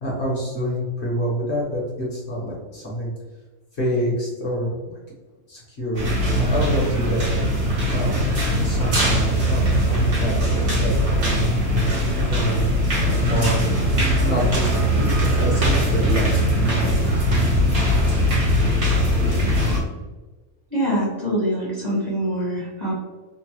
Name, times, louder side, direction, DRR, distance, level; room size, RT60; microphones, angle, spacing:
voice 1, 0.0-3.1 3.7-5.0 5.5-7.3 7.9-8.2 8.6-11.5 12.3-13.6 14.0-16.9, equal, 55° left, -4 dB, 1.0 m, -27 dB
sound 1, 5.9-19.8, equal, 55° right, 1.4 m, -20 dB
voice 2, 20.7-22.9, equal, 35° right, -7 dB, 1.0 m, -24 dB
3.0 x 2.1 x 2.9 m, 1.2 s
omnidirectional pair, 1.5 m